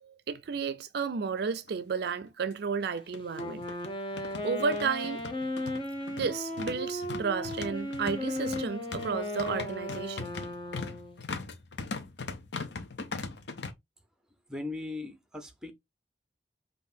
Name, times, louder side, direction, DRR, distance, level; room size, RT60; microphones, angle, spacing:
voice 1, 0.0-3.6 4.4-5.2 6.2-10.3, right 5 dB, 65° right, 0.4 m, -32 dB
sound 1, 1.7-1.8 2.0-2.1 3.0-13.7, left 4 dB, 70° left, 0.7 m, -40 dB
Wind instrument woodwind instrument, 3.3-11.2, left 1 dB, 30° left, 0.9 m, -36 dB
voice 2, 14.5-15.7, left 2 dB, 5° right, 0.9 m, -38 dB
5.5 x 2.6 x 2.6 m
head